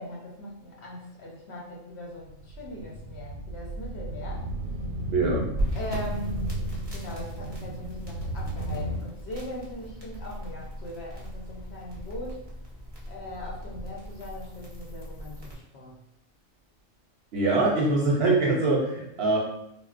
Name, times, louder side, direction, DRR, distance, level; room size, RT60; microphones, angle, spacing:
voice 1, 0.0-4.5 5.7-6.5 6.9-12.5 13.1-16.0, left 1 dB, 60° left, -3 dB, 0.9 m, -40 dB
sound 1, 2.2-9.0, right 1 dB, 90° right, 1.0 m, -34 dB
voice 2, 5.1-5.5 17.3-19.4, right 2 dB, 60° right, -3 dB, 0.7 m, -23 dB
sound 2, 5.6-15.5, right 1 dB, 25° right, 0.6 m, -37 dB
3.6 x 2.2 x 2.4 m, 0.79 s
omnidirectional pair, 1.4 m